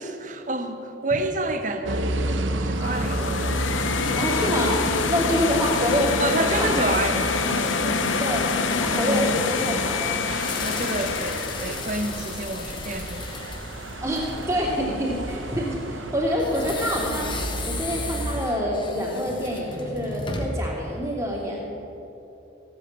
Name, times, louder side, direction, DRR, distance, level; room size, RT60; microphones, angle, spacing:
voice 1, 0.0-2.1 2.6-3.8 6.2-8.4 8.9-9.9 10.6-13.4, right 2 dB, 40° right, 7 dB, 1.1 m, -29 dB
sound 1, 1.9-18.5, right 1 dB, 80° right, 1.0 m, -32 dB
sound 2, 2.8-13.8, left 4 dB, 80° left, 1.0 m, -27 dB
voice 2, 4.2-6.3 6.6-7.0 8.2-10.3 14.0-17.3 17.6-21.6, equal, 15° right, -3 dB, 2.9 m, -27 dB
sound 3, 9.3-14.7 16.4-20.7, left 3 dB, 25° left, 1.3 m, -36 dB
16.0 x 8.5 x 8.7 m, 3.0 s
head